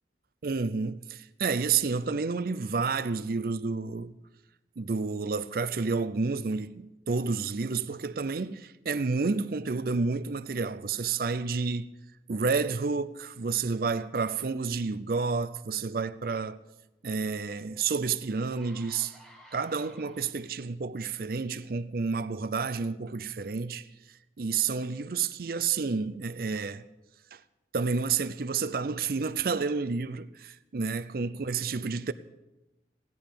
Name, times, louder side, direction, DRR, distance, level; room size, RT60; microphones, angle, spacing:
voice 1, 0.4-4.1 4.8-11.9 12.3-16.6 17.0-19.2 19.5-26.9 27.3-27.4 27.7-32.1, right 4 dB, 55° right, 0.5 m, -30 dB
sound 1, 17.7-17.8 18.3-20.7 21.3-21.6, equal, 5° left, 1.9 m, -54 dB
16.5 x 11.0 x 6.7 m
head